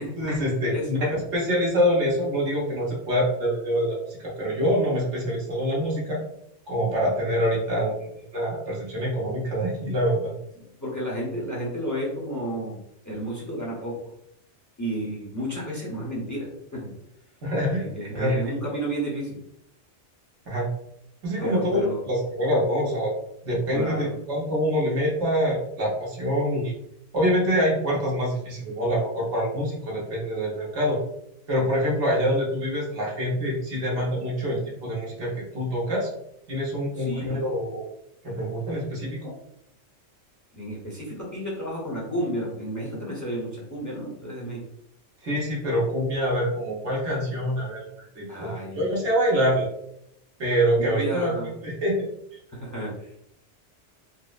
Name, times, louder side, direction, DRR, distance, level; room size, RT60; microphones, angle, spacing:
voice 1, 0.2-6.2 6.7-8.0 8.3-10.3 17.4-17.8 18.1-18.4 20.5-20.7 21.2-23.1 23.4-26.7 27.1-31.0 31.5-36.1 36.5-37.8 38.2-39.3 45.2-49.7 50.4-51.3 51.6-52.0, equal, 80° right, -4 dB, 1.4 m, -25 dB
voice 2, 10.8-12.8 13.0-14.1 14.8-16.9 17.8-19.4 21.4-22.0 23.7-24.1 37.0-37.4 40.5-44.6 48.3-49.0 50.8-51.5 52.5-53.2, right 1 dB, 20° left, -4 dB, 0.7 m, -32 dB
4.3 x 2.0 x 2.5 m, 0.76 s
omnidirectional pair, 1.2 m